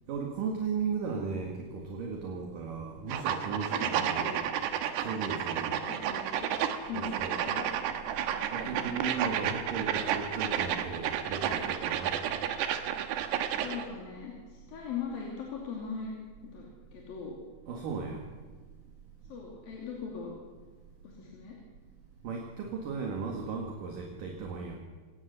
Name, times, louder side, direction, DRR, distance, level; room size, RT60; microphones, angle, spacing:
voice 1, 0.1-4.3 5.0-5.8 6.9-7.4 8.5-12.2 17.7-18.2 22.2-24.7, right 5 dB, 60° right, 1 dB, 3.1 m, -36 dB
sound 1, 3.1-13.9, right 9 dB, 90° right, 3.4 m, -31 dB
voice 2, 3.8-4.4 5.3-5.4 5.9-6.5 6.9-7.6 8.6-8.9 13.5-16.1 16.4-17.4 19.3-20.3 21.0-21.6, left 5 dB, 60° left, -2 dB, 4.3 m, -40 dB
26.5 x 18.0 x 6.9 m, 1.4 s
omnidirectional pair, 4.7 m